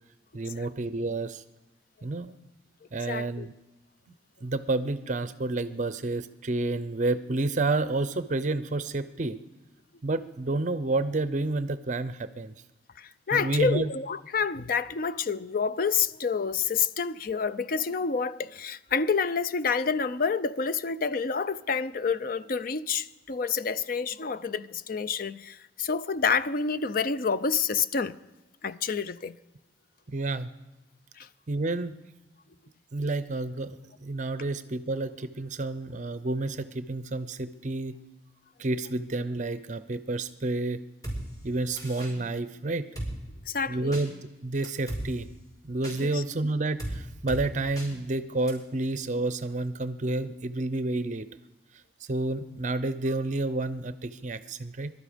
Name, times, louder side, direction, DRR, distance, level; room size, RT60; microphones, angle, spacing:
voice 1, 0.3-1.4 2.0-2.3 2.9-3.5 4.4-9.4 10.0-12.5 13.3-13.9 30.1-30.5 31.5-32.0 32.9-38.0 38.6-40.8 41.4-42.8 43.7-44.1 44.4-45.3 45.6-51.3 52.1-54.9, right 2 dB, 40° right, 0.6 m, -30 dB
voice 2, 3.1-3.5 13.0-28.2 28.6-29.4 31.2-31.3 43.5-44.0 46.1-46.2, left 5 dB, 50° left, 0.5 m, -28 dB
Drum kit, 41.0-41.2 41.8-42.1 43.0-43.1 43.9-44.0 44.6-45.0 45.8-46.0 46.8-46.9 47.3-47.4 47.8-47.9 48.5-48.6, right 1 dB, 20° left, 5.0 m, -34 dB
23.0 x 12.0 x 5.1 m
head